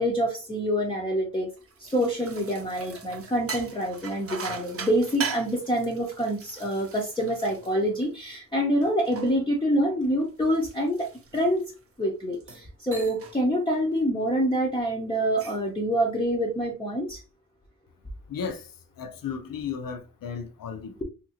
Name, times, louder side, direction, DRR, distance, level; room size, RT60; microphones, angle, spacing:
voice 1, 0.0-1.5 1.8-11.6 12.0-17.2, equal, 15° left, 0.5 m, -26 dB
sound 1, 1.6-8.4 8.8-11.8 12.3-12.7 12.9-13.4 13.7-14.0 15.1-15.7, right 5 dB, 45° right, 0.6 m, -40 dB
voice 2, 18.3-21.0, left 6 dB, 80° left, 0.6 m, -35 dB
2.8 x 2.5 x 2.7 m
wide cardioid pair, 120°, 33 cm